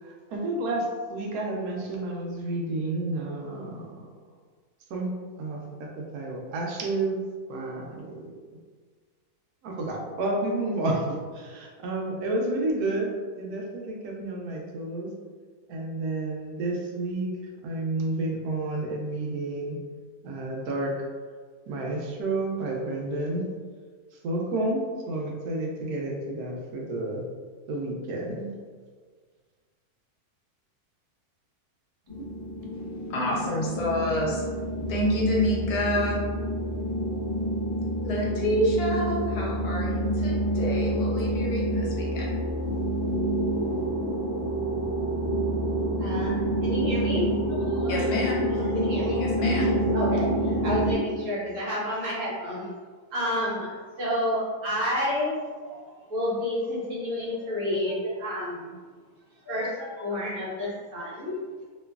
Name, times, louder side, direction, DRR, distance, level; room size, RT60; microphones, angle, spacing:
voice 1, 0.0-4.0 4.9-5.1 5.4-7.2 7.5-8.2 9.6-15.1 15.7-17.3 17.6-19.8 20.2-20.9 21.7-23.5 24.1-27.2 27.7-28.5, right 2 dB, 80° right, -1 dB, 1.1 m, -30 dB
sound 1, 32.1-50.9, right 1 dB, 35° left, 0.4 m, -28 dB
voice 2, 33.1-34.4 34.9-36.2 38.0-42.4 47.9-48.7 49.2-49.8, left 1 dB, 75° left, -3 dB, 1.2 m, -28 dB
voice 3, 46.0-48.1 48.7-49.3 49.7-52.7 53.1-58.8 59.4-61.4, left 1 dB, 60° right, -7 dB, 1.2 m, -30 dB
3.0 x 2.2 x 2.3 m, 1.6 s
omnidirectional pair, 1.6 m